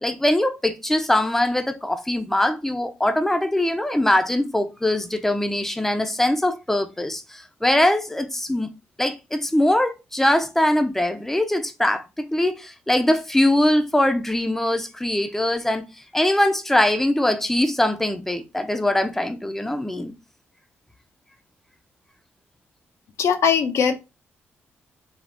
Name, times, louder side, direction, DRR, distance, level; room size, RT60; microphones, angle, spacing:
voice 1, 0.0-8.7 9.0-15.8 16.1-20.1, left 1 dB, 5° left, 0.5 m, -22 dB
voice 2, 23.2-24.0, left 7 dB, 70° left, 0.5 m, -20 dB
3.4 x 2.3 x 2.5 m
supercardioid pair, 60°, 5 cm